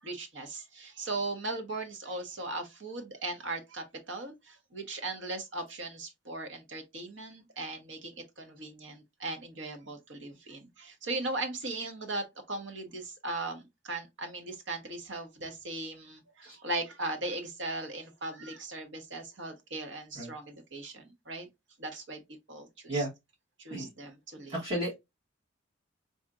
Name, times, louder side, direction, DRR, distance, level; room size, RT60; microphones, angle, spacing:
voice 1, 0.0-21.5 21.8-22.2 22.5-23.0 23.6-24.6, right 2 dB, 65° right, 1.1 m, -38 dB
voice 2, 24.5-25.0, right 1 dB, 30° right, 1.4 m, -33 dB
4.1 x 2.9 x 2.4 m
head